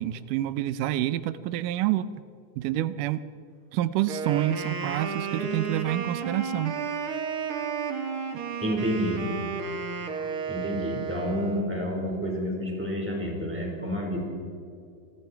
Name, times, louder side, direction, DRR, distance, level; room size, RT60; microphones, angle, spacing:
voice 1, 0.0-2.1 2.6-3.2 3.7-6.7, right 13 dB, 90° right, 14 dB, 2.3 m, -28 dB
Wind instrument woodwind instrument, 4.0-11.7, right 6 dB, 50° right, 2.3 m, -32 dB
voice 2, 8.6-9.3 10.5-14.2, equal, 5° right, -1 dB, 4.7 m, -29 dB
27.5 x 23.0 x 4.6 m, 2.5 s
omnidirectional pair, 3.7 m